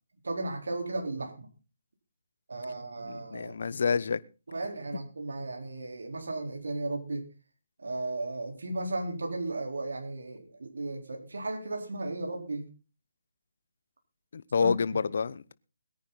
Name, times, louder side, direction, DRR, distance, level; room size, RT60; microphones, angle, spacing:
voice 1, 0.2-1.5 2.5-3.5 4.5-7.3 7.8-12.7 14.6-14.8, right 2 dB, 80° right, 4.2 m, -35 dB
voice 2, 3.1-4.2 14.3-15.5, left 5 dB, 65° left, 0.9 m, -28 dB
21.5 x 9.7 x 4.2 m
hypercardioid pair, 155°, 0 cm